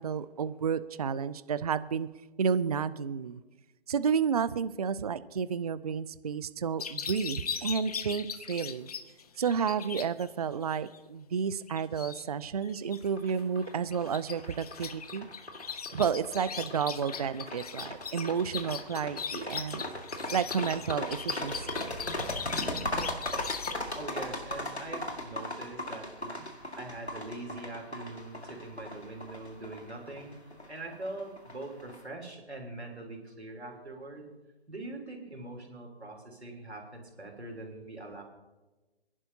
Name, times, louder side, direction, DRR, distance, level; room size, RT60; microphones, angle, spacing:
voice 1, 0.0-2.1 2.4-3.4 3.9-8.9 9.4-15.3 15.9-19.8 20.3-21.8, right 6 dB, 40° right, 15 dB, 0.4 m, -31 dB
sound 1, 6.8-10.3 10.6-11.0 11.7-12.2 12.6-13.4 13.7-23.7, left 7 dB, 35° left, 0.6 m, -40 dB
sound 2, 13.2-32.0, left 1 dB, 85° left, 1.9 m, -38 dB
voice 2, 23.9-30.4 30.7-34.3 34.7-38.2, right 2 dB, 85° right, 1 dB, 3.3 m, -42 dB
28.0 x 11.0 x 2.8 m, 1.1 s
figure-of-eight pair, 140°, 32 cm